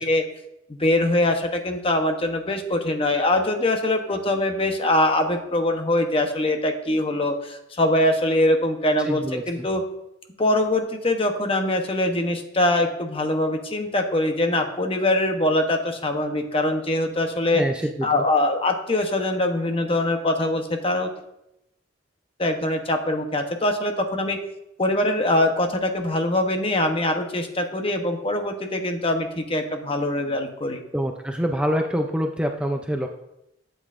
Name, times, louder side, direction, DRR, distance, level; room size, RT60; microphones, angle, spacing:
voice 1, 0.7-9.8 10.4-17.6 18.0-21.1 22.4-24.4 24.8-30.8, left 1 dB, 30° left, 4 dB, 0.9 m, -23 dB
voice 2, 9.1-9.7 17.5-18.1 30.9-33.1, equal, 5° right, 3 dB, 0.4 m, -25 dB
12.0 x 7.9 x 2.5 m, 0.84 s
head